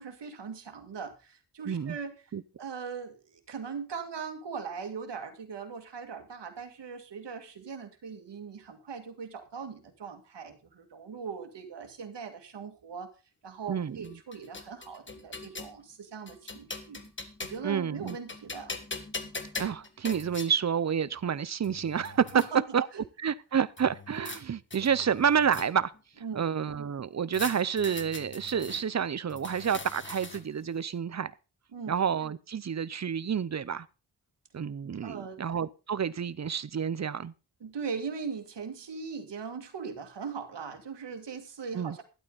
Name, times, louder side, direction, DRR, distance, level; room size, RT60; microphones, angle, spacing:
voice 1, 0.0-2.1 2.6-13.1 13.4-17.0 17.4-18.7 22.3-23.0 26.2-26.5 31.7-32.0 35.0-35.6 37.6-42.0, right 6 dB, 90° right, 2.2 m, -40 dB
voice 2, 1.7-2.0 2.3-2.4 13.7-14.0 17.6-18.2 19.6-22.3 22.7-22.9 23.2-25.9 26.4-31.3 31.9-33.9 34.5-37.3 41.7-42.0, right 7 dB, 40° right, 0.6 m, -29 dB
sound 1, 14.0-15.7 16.3-17.7 18.1-20.5 21.3-21.4 21.6-22.5 23.8-24.4 24.7-26.0 27.3-28.8 29.3-30.6, left 3 dB, 30° left, 1.5 m, -41 dB
12.5 x 11.5 x 4.0 m
wide cardioid pair, 130°, 41 cm